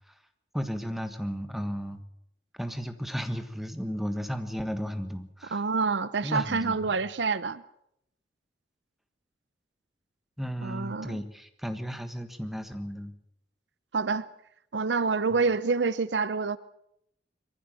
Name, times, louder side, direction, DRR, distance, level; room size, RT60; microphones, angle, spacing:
voice 1, 0.5-2.0 2.5-5.6 6.2-6.9 10.4-13.1, equal, ahead, 1.4 m, -34 dB
voice 2, 5.5-7.6 10.6-11.2 13.9-14.2 14.7-16.6, right 4 dB, 80° right, 0.7 m, -27 dB
22.5 x 15.0 x 7.5 m
head